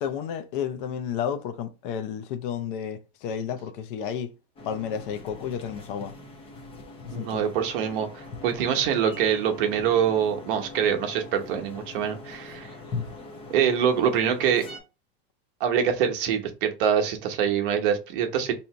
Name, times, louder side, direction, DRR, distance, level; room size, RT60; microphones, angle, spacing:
voice 1, 0.0-4.3 4.6-6.1 7.0-7.4, left 8 dB, 60° left, 0.6 m, -32 dB
sound 1, 4.6-14.8, left 3 dB, 20° left, 0.7 m, -41 dB
voice 2, 7.1-12.7 13.5-14.7 15.6-18.5, right 8 dB, 60° right, 0.9 m, -24 dB
2.8 x 2.7 x 4.4 m
supercardioid pair, 155°, 30 cm